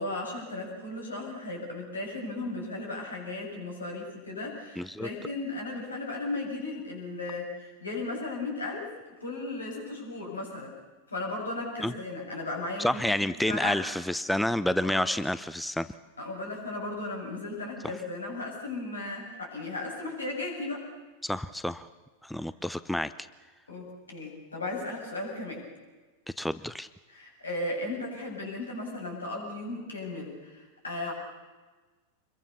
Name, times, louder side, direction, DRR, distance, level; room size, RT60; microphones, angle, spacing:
voice 1, 0.0-8.9 9.2-10.7 11.1-13.1 13.5-13.8 14.8-15.0 16.2-20.9 23.7-25.6 27.1-31.1, left 2 dB, 75° left, 0 dB, 7.7 m, -36 dB
voice 2, 4.8-5.1 11.8-11.9 12.8-15.9 21.2-21.9 22.2-23.1 26.4-26.9, left 1 dB, 5° left, 15 dB, 0.6 m, -29 dB
27.0 x 22.5 x 6.9 m, 1.3 s
figure-of-eight pair, 90°, 0 cm